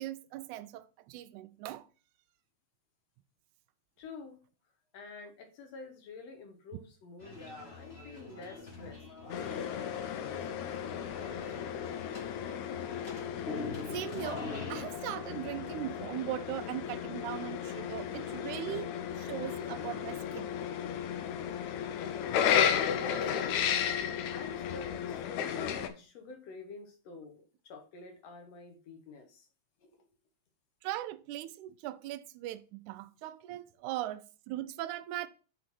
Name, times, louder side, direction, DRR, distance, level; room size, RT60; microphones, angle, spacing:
voice 1, 0.0-1.9 13.9-20.5 30.8-35.3, right 14 dB, 90° right, 2.0 m, -39 dB
voice 2, 4.0-4.4 4.9-11.4 23.0-23.6 24.3-29.5 29.8-30.1, left 4 dB, 65° left, 2.1 m, -49 dB
sound 1, 7.2-14.8, left 3 dB, 35° left, 0.9 m, -44 dB
sound 2, 9.3-25.9, left 8 dB, 85° left, 2.1 m, -34 dB
6.1 x 3.8 x 5.9 m
omnidirectional pair, 3.4 m